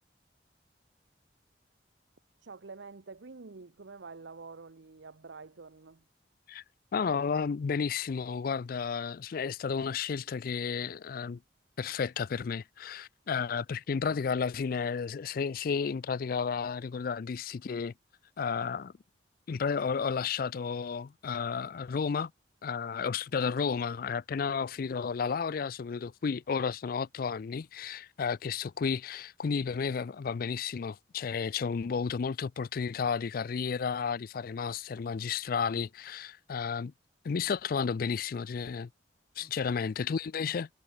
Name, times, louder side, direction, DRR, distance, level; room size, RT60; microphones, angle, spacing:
voice 1, 2.4-6.1 39.4-39.5, right 4 dB, 80° right, 0.8 m, -47 dB
voice 2, 6.9-11.4 11.8-17.9 18.4-18.9 19.5-22.3 22.6-36.9 37.2-38.9 39.4-40.7, left 6 dB, 50° left, 0.4 m, -32 dB
head